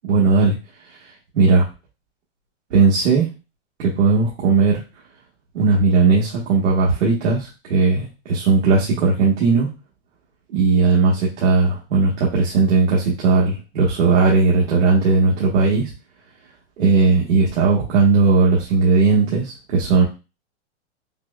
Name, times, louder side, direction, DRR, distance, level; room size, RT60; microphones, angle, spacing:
voice 1, 0.0-0.5 0.9-1.7 2.7-3.3 3.8-4.8 5.5-9.7 10.5-15.9 16.8-20.0, right 4 dB, 85° right, -4 dB, 1.2 m, -17 dB
5.7 x 2.1 x 2.2 m, 0.29 s
supercardioid pair, 160°, 35 cm